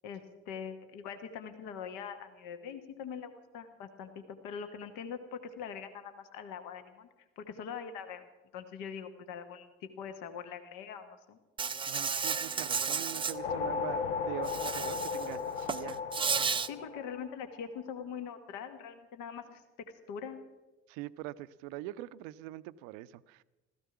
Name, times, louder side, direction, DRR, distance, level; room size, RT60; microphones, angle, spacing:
voice 1, 0.0-7.1 7.4-8.2 8.5-11.4 16.7-19.6 20.1-20.4, left 7 dB, 60° left, 1.2 m, -43 dB
Insect, 11.6-13.3 14.5-15.3 15.6-16.7, right 5 dB, 15° right, 0.5 m, -32 dB
voice 2, 11.9-16.0 20.9-23.4, right 15 dB, 60° right, 0.6 m, -43 dB
sound 1, 13.1-17.7, left 5 dB, 75° left, 0.7 m, -36 dB
15.5 x 14.0 x 5.9 m
figure-of-eight pair, 50°, 35 cm